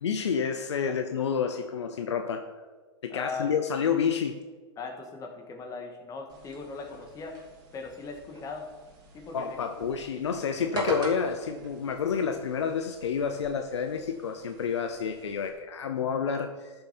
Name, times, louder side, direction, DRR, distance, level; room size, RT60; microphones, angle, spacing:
voice 1, 0.0-2.5 3.0-4.4 9.3-16.7, left 6 dB, 85° left, 6 dB, 0.8 m, -29 dB
voice 2, 3.1-3.5 4.8-7.4 7.7-8.7 9.1-9.9, left 4 dB, 25° left, 2 dB, 1.9 m, -39 dB
sound 1, 6.3-15.5, right 1 dB, 30° right, 2.7 m, -40 dB
13.0 x 6.7 x 4.4 m, 1.4 s
hypercardioid pair, 120°, 14 cm